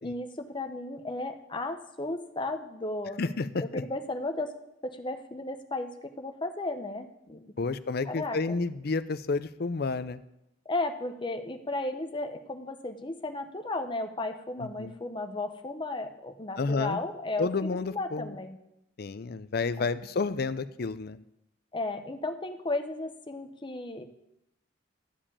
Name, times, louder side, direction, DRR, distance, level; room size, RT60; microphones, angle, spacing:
voice 1, 0.0-3.2 3.6-4.5 4.8-7.4 8.1-8.6 10.7-18.6 19.8-19.9 21.7-24.0, left 2 dB, 25° left, 6 dB, 0.8 m, -34 dB
voice 2, 3.2-3.8 7.6-10.2 14.6-14.9 16.6-17.0 17.4-18.3 19.0-21.2, left 4 dB, 55° left, 14 dB, 0.5 m, -30 dB
13.0 x 5.0 x 8.7 m, 0.85 s
head